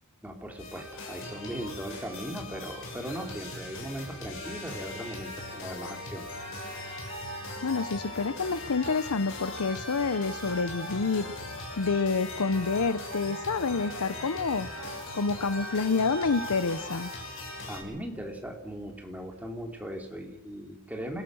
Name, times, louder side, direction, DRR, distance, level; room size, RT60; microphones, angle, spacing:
voice 1, 0.2-6.5 17.7-21.2, equal, 5° right, 2 dB, 3.2 m, -38 dB
sound 1, 0.6-17.8, left 2 dB, 60° left, 6.3 m, -40 dB
sound 2, 6.1-18.1, right 3 dB, 65° right, 2.6 m, -44 dB
voice 2, 7.6-11.3 11.8-14.7 15.1-17.1, left 4 dB, 80° left, 14 dB, 0.8 m, -28 dB
29.0 x 17.5 x 6.4 m, 0.92 s
head